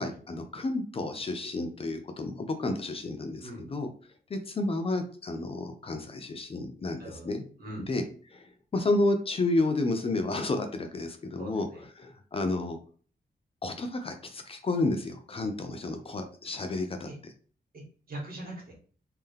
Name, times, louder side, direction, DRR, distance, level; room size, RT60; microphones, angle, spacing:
voice 1, 0.0-3.9 4.3-7.4 7.9-8.0 8.3-11.7 12.0-12.8 13.6-17.1, left 2 dB, 35° left, 6 dB, 0.5 m, -31 dB
voice 2, 11.4-11.8 17.0-17.2 17.7-18.7, right 1 dB, 65° right, -1 dB, 1.6 m, -42 dB
3.7 x 2.8 x 3.3 m, 0.42 s
wide cardioid pair, 150°, 16 cm